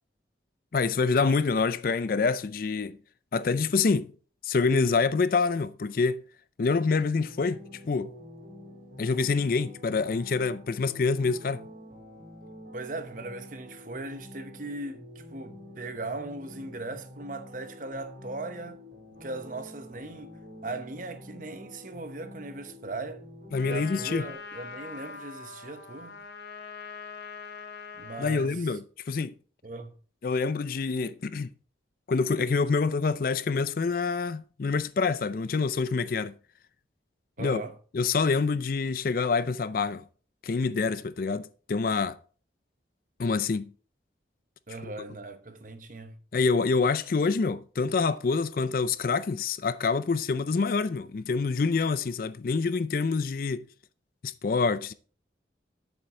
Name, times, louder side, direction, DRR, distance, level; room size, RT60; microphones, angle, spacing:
voice 1, 0.7-3.0 3.3-4.1 4.4-6.2 6.6-8.1 9.0-11.7 23.5-24.2 28.2-29.3 30.2-31.5 32.1-36.3 37.4-37.6 37.9-40.0 40.4-42.2 43.2-43.7 44.8-44.9 46.3-53.7 54.2-54.9, left 4 dB, 50° left, 0.4 m, -26 dB
sound 1, 7.2-24.3, left 1 dB, 65° right, 2.6 m, -47 dB
voice 2, 12.7-18.9 19.2-20.4 20.6-23.2 23.6-26.2 27.9-28.8 29.6-29.9 37.4-37.8 44.7-46.2, right 2 dB, 45° right, 0.9 m, -39 dB
Trumpet, 23.5-28.5, left 5 dB, 70° left, 1.0 m, -43 dB
7.8 x 7.1 x 3.7 m
head